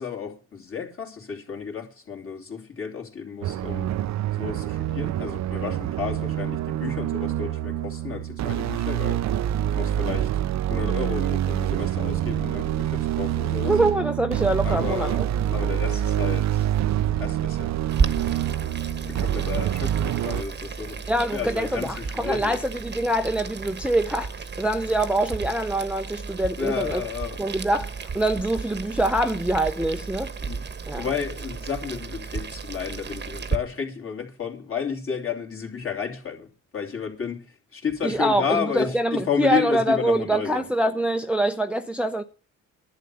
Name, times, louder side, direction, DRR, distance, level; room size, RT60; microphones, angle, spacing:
voice 1, 0.0-4.0 4.4-9.2 9.8-10.3 10.7-13.8 14.6-15.2 15.5-16.7 17.2-17.7 19.0-21.0 21.3-22.6 26.6-27.4 30.4-30.6 31.0-40.7, left 6 dB, 45° left, 3.1 m, -32 dB
sound 1, 3.4-20.4, right 11 dB, 65° right, 0.6 m, -26 dB
voice 2, 13.7-15.3 21.1-27.0 27.4-30.3 30.9-31.1 38.0-42.2, right 1 dB, 5° right, 0.6 m, -24 dB
Boiling, 17.9-33.6, right 5 dB, 35° right, 1.1 m, -33 dB
11.0 x 8.3 x 6.8 m
cardioid pair, 90°, 30 cm